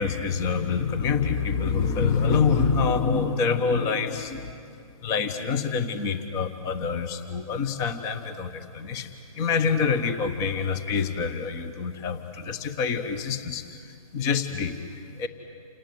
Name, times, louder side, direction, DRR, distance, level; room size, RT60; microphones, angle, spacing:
voice 1, 0.0-4.5 5.0-9.1 9.4-13.8 14.1-15.3, left 5 dB, 15° left, 9 dB, 1.1 m, -26 dB
28.5 x 18.5 x 9.6 m, 2.3 s
hypercardioid pair, 150°, 19 cm